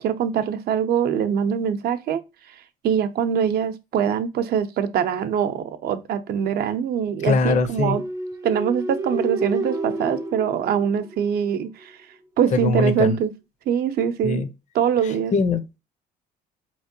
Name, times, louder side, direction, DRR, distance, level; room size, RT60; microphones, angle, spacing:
voice 1, 0.0-2.2 2.8-8.0 8.4-12.0 12.4-13.3 13.7-14.4 14.7-15.3, right 8 dB, 65° right, 0.6 m, -23 dB
voice 2, 7.2-8.0 12.5-13.2 14.2-14.5 15.0-15.8, left 4 dB, 45° left, 0.6 m, -22 dB
sound 1, 7.8-11.6, right 2 dB, 20° right, 0.5 m, -30 dB
4.3 x 3.1 x 2.6 m
cardioid pair, 110°, 17 cm